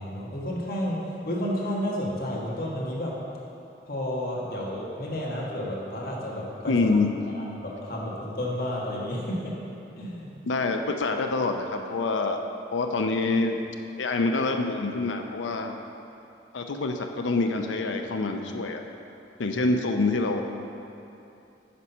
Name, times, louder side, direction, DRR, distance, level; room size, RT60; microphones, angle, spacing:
voice 1, 0.0-3.1 3.9-6.8 7.3-9.5 10.0-10.3, equal, 50° left, -4 dB, 1.3 m, -31 dB
voice 2, 6.7-7.1 10.4-12.4 12.7-13.6 14.0-15.7 16.5-18.8 19.4-20.4, left 3 dB, 90° left, 4 dB, 0.5 m, -26 dB
9.4 x 4.2 x 5.5 m, 2.8 s
head